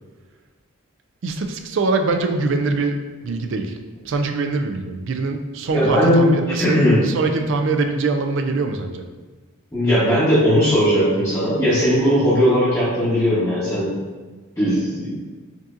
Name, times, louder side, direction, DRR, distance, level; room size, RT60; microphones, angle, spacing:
voice 1, 1.2-3.0 3.2-3.8 4.0-9.0, right 3 dB, 55° right, 5 dB, 0.3 m, -23 dB
voice 2, 5.7-6.3 6.6-7.0 9.7-13.9 14.5-15.2, equal, 15° left, -12 dB, 1.0 m, -18 dB
5.2 x 2.7 x 2.5 m, 1.3 s
head